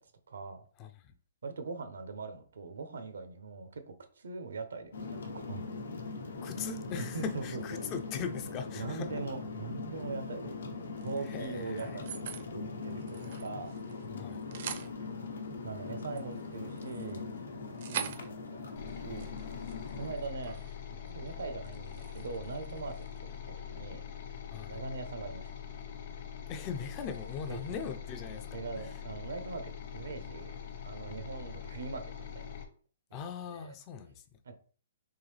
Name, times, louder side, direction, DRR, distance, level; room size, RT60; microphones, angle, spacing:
voice 1, 0.3-0.6 1.4-5.7 7.0-7.8 8.7-12.3 12.5-13.7 15.0-15.1 15.6-17.3 17.9-19.4 20.0-20.6 20.9-24.0 24.7-25.5 27.5-27.6 28.5-32.5 33.1-33.8 34.4-34.6, right 4 dB, 85° right, 0.8 m, -42 dB
voice 2, 0.8-1.1 6.4-9.3 11.2-12.0 14.1-14.4 24.5-24.8 26.5-29.0 33.1-34.4, left 6 dB, 25° left, 0.4 m, -40 dB
sound 1, 4.9-20.1, left 4 dB, 85° left, 0.9 m, -41 dB
sound 2, 11.0-12.5 12.8-14.1 14.3-14.9 15.8-20.8 21.1-21.3 21.6-23.2, right 8 dB, 45° right, 0.5 m, -44 dB
sound 3, 18.8-32.7, left 9 dB, 45° left, 0.8 m, -43 dB
3.7 x 3.0 x 3.3 m
hypercardioid pair, 165°, 0 cm